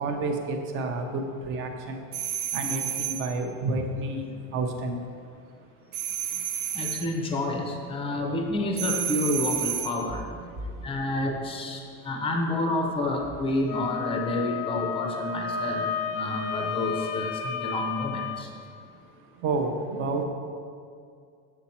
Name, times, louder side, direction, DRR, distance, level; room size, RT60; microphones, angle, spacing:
voice 1, 0.0-6.9 10.4-10.9 11.8-12.0 18.7-20.2, right 3 dB, 30° right, 4 dB, 0.7 m, -32 dB
sound 1, 2.1-3.3 5.9-7.1 8.8-10.0, right 10 dB, 85° right, 0.9 m, -30 dB
voice 2, 6.7-10.3 10.8-18.5, left 2 dB, 15° left, 2 dB, 0.6 m, -29 dB
Wind instrument woodwind instrument, 13.7-18.4, left 6 dB, 80° left, 0.7 m, -32 dB
7.1 x 7.1 x 4.3 m, 2.3 s
cardioid pair, 180°, 39 cm